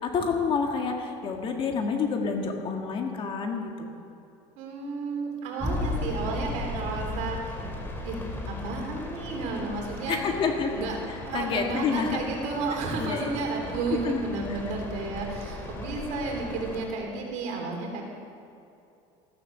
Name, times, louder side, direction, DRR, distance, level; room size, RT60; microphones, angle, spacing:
voice 1, 0.0-3.9 10.1-10.7 11.1-12.2 13.0-13.3 13.9-14.2 14.5-14.6, left 5 dB, 35° left, 3 dB, 1.9 m, -28 dB
voice 2, 4.6-7.5 8.0-8.2 8.5-10.2 10.7-11.0 11.3-18.0, right 3 dB, 60° right, 1 dB, 3.8 m, -32 dB
sound 1, 5.6-16.9, left 2 dB, 15° left, 2.3 m, -36 dB
14.5 x 13.5 x 6.9 m, 2.7 s
cardioid pair, 150°, 14 cm